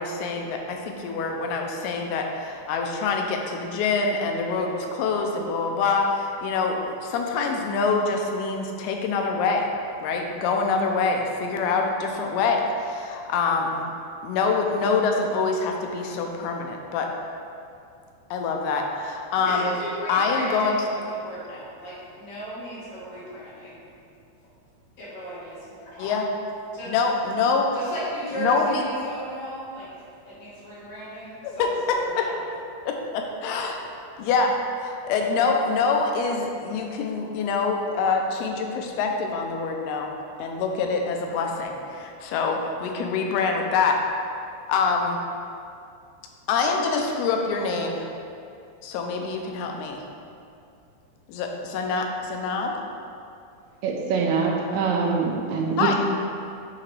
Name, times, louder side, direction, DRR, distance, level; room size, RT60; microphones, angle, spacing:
voice 1, 0.0-9.7 10.0-13.8 14.2-17.1 18.3-19.8 20.1-20.8 26.0-26.3 26.9-27.7 28.3-28.8 31.4-32.3 32.9-33.8 34.2-40.1 40.4-44.0 44.7-45.2 46.5-48.1 48.8-50.0 51.3-52.8 55.8-55.9, left 4 dB, 90° left, 2 dB, 2.6 m, -25 dB
voice 2, 19.4-20.8 21.1-23.9 25.0-26.2 26.7-26.9 27.7-29.9 30.3-32.4, right 1 dB, 55° left, -10 dB, 2.4 m, -35 dB
voice 3, 53.8-55.9, right 5 dB, 85° right, -1 dB, 2.6 m, -24 dB
8.5 x 3.0 x 4.6 m, 2.4 s
omnidirectional pair, 4.5 m